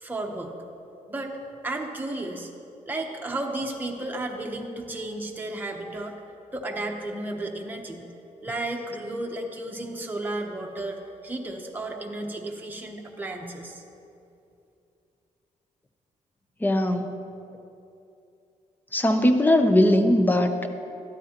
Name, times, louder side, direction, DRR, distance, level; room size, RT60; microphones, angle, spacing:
voice 1, 0.0-0.5 1.1-1.4 1.6-2.5 2.8-6.1 6.5-8.0 8.4-13.8, right 2 dB, 15° right, 1 dB, 0.9 m, -33 dB
voice 2, 16.6-17.2 18.9-20.7, left 1 dB, 15° left, 7 dB, 0.6 m, -20 dB
13.5 x 12.0 x 2.9 m, 2.7 s
cardioid pair, 140°, 14 cm